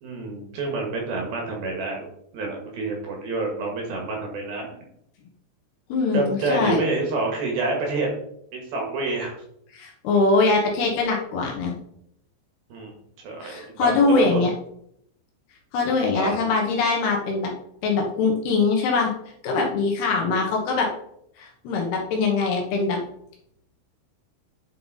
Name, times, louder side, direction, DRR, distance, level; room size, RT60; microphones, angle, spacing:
voice 1, 0.0-2.1 2.3-4.7 6.1-8.1 8.5-9.3 12.7-12.9 13.2-14.4 16.1-16.4 20.1-20.4, right 3 dB, 60° right, 0 dB, 3.1 m, -28 dB
voice 2, 5.9-6.8 9.7-11.7 13.4-14.5 15.7-17.5 17.8-19.1 19.4-20.9 21.4-23.0, left 4 dB, 70° left, 0 dB, 2.9 m, -22 dB
9.4 x 5.6 x 4.0 m, 0.72 s
omnidirectional pair, 5.4 m